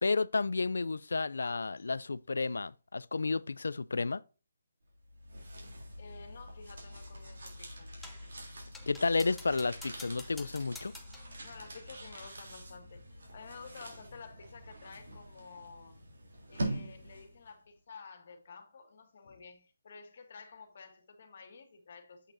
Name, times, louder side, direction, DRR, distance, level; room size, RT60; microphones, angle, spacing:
voice 1, 0.0-4.2 8.9-10.9, left 3 dB, 75° left, 0.4 m, -31 dB
sound 1, 4.9-17.5, right 1 dB, 70° right, 3.1 m, -44 dB
voice 2, 6.0-7.9 11.4-16.0 16.5-22.3, left 5 dB, 55° left, 2.1 m, -51 dB
sound 2, 8.0-8.3 8.7-11.3, left 3 dB, 5° left, 0.8 m, -50 dB
8.2 x 5.9 x 2.6 m
figure-of-eight pair, 150°, 0 cm